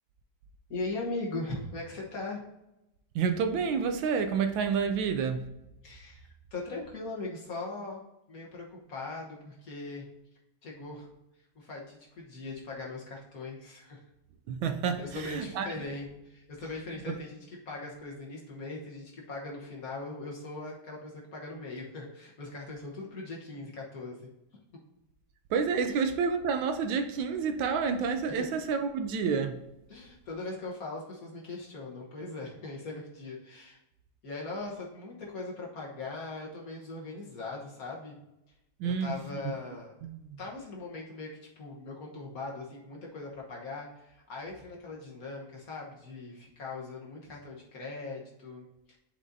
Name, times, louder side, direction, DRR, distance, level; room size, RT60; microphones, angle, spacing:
voice 1, 0.7-2.4 5.8-8.0 8.3-10.1 10.6-11.1 11.5-14.0 15.0-24.3 25.9-26.0 29.9-33.8 34.2-38.2 38.8-39.9 40.4-41.3 41.6-49.0, left 3 dB, 50° left, 1.5 m, -40 dB
voice 2, 3.1-5.5 14.5-15.7 17.1-17.2 25.5-29.6 38.8-39.2 40.0-40.4, right 6 dB, 75° right, 1.3 m, -29 dB
10.5 x 5.1 x 2.7 m
omnidirectional pair, 2.2 m